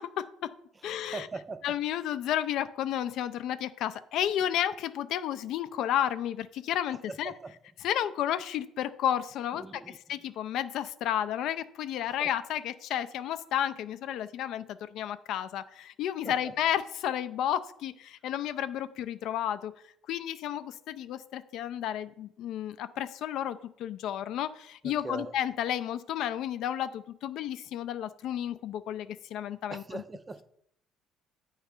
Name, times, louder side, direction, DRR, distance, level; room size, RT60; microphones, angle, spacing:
voice 1, 0.2-0.5 0.8-1.3 1.6-7.3 7.8-9.8 10.1-19.7 20.1-30.0, left 10 dB, 70° left, 13 dB, 0.4 m, -32 dB
voice 2, 1.1-1.8 7.1-7.6 9.5-10.3 12.1-12.3 16.2-16.5 24.8-25.3 29.7-30.5, right 3 dB, 20° right, 12 dB, 0.4 m, -41 dB
8.9 x 3.2 x 5.1 m, 0.69 s
cardioid pair, 135°, 0 cm